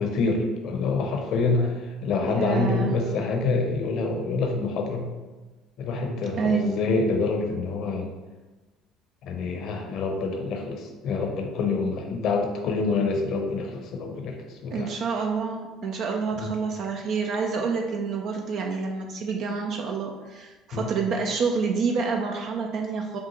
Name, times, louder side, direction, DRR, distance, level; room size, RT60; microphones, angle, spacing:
voice 1, 0.0-5.1 5.8-8.1 9.2-14.9 16.4-16.5 20.7-20.9, left 3 dB, 60° left, 3 dB, 0.7 m, -26 dB
voice 2, 2.2-2.9 6.4-6.8 14.7-23.2, right 5 dB, 55° right, 2 dB, 0.4 m, -28 dB
5.5 x 2.4 x 2.9 m, 1.2 s
hypercardioid pair, 65°, 0 cm